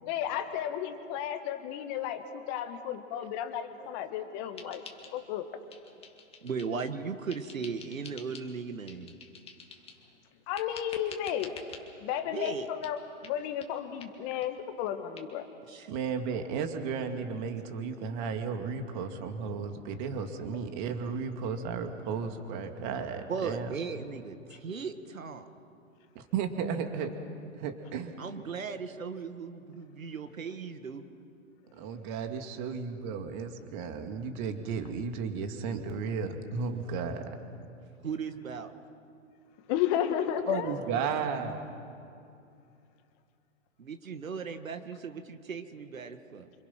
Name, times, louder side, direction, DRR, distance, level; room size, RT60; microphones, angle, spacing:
voice 1, 0.0-4.8 5.1-5.5 10.5-11.5 12.0-15.5 39.7-40.8, left 10 dB, 30° left, 8 dB, 1.6 m, -33 dB
sound 1, 4.6-5.4 5.7-6.9 7.3-8.5 8.9-10.0 10.6-11.8 12.4-12.6 12.8-13.0 13.2-13.4 13.6-13.7 14.0-14.1 14.4-14.5 14.8-14.9 15.2-15.3, left 5 dB, 15° left, 2.2 m, -48 dB
voice 2, 6.4-9.1 12.3-12.7 15.7-15.9 23.3-25.5 28.2-31.0 38.0-38.7 43.8-46.5, right 5 dB, 85° right, 9 dB, 1.8 m, -37 dB
voice 3, 15.9-23.7 26.1-27.1 27.6-28.2 31.8-37.3 40.5-41.6, right 6 dB, 35° right, 6 dB, 2.5 m, -34 dB
27.5 x 26.0 x 6.0 m, 2.5 s
hypercardioid pair, 125°, 39 cm